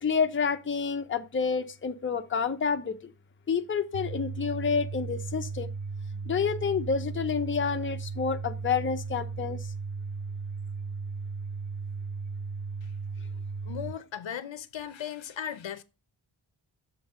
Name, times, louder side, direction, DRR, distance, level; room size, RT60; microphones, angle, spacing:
voice 1, 0.0-3.1 3.5-5.7 6.3-9.7, left 6 dB, 25° left, 0.6 m, -29 dB
sound 1, 3.9-13.9, right 4 dB, 75° right, 0.7 m, -36 dB
voice 2, 13.6-15.8, left 9 dB, 70° left, 0.6 m, -37 dB
7.1 x 3.9 x 4.6 m
wide cardioid pair, 85°, 49 cm